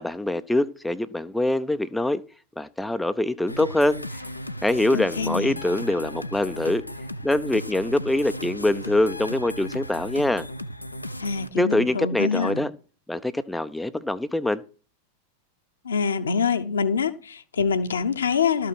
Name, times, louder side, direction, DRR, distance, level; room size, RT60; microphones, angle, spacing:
voice 1, 0.0-2.2 2.6-4.0 4.6-6.8 7.2-10.5 11.5-12.7 13.1-14.6, left 1 dB, 5° left, 0.5 m, -24 dB
sound 1, 3.5-11.5, left 1 dB, 85° left, 0.6 m, -36 dB
voice 2, 4.9-5.6 11.2-12.6 15.8-18.7, left 5 dB, 70° left, 1.0 m, -25 dB
13.0 x 6.1 x 6.1 m
figure-of-eight pair, 90°, 0 cm